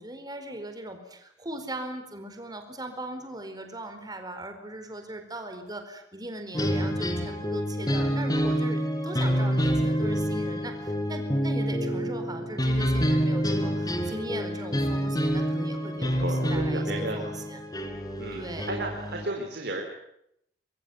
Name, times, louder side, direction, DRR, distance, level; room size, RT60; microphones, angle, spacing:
voice 1, 0.0-17.6 18.3-18.8, right 1 dB, 20° right, 6 dB, 4.5 m, -39 dB
sound 1, 6.5-19.3, equal, 20° left, 4.1 m, -27 dB
voice 2, 16.0-17.3 18.2-19.8, right 2 dB, 65° right, 2 dB, 4.3 m, -34 dB
24.5 x 23.5 x 9.5 m, 0.76 s
head